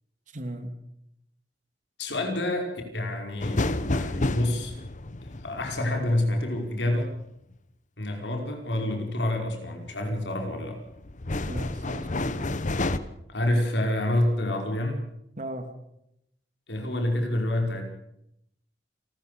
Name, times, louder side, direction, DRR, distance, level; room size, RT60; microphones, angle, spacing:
voice 1, 0.3-0.7 11.4-12.3 15.4-15.7, right 1 dB, 45° right, 8 dB, 2.7 m, -36 dB
voice 2, 2.0-4.8 5.2-7.1 8.0-10.8 13.3-15.0 16.7-17.8, left 1 dB, 80° left, 3 dB, 5.3 m, -28 dB
sound 1, 3.4-7.3 9.8-10.2 10.7-13.0, left 2 dB, 45° left, 1.1 m, -30 dB
29.0 x 14.0 x 6.9 m, 0.79 s
head